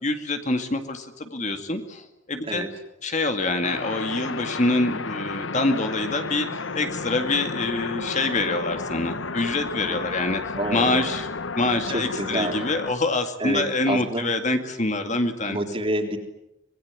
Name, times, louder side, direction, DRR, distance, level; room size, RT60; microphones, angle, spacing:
voice 1, 0.0-2.6 3.0-6.5 6.7-10.4 10.7-11.2 11.6-15.6, left 2 dB, 40° left, 7 dB, 2.2 m, -25 dB
sound 1, 3.6-12.9, left 4 dB, 75° left, 1.1 m, -32 dB
voice 2, 10.5-11.1 11.9-12.6 13.4-14.3 15.1-15.2 15.5-16.2, right 1 dB, 30° right, 4 dB, 3.7 m, -28 dB
26.0 x 21.0 x 9.7 m, 0.85 s
head